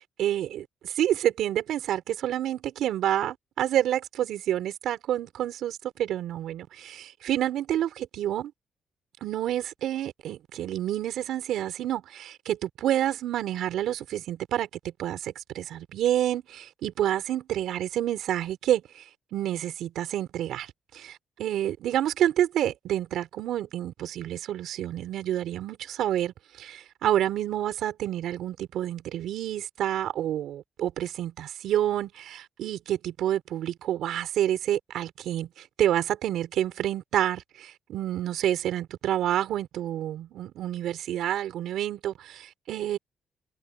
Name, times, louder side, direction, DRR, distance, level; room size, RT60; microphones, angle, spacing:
voice 1, 0.2-8.5 9.2-14.7 15.0-19.0 19.3-21.1 21.4-43.0, right 12 dB, 80° right, 4.3 m, -28 dB
cardioid pair, 90°, 0 cm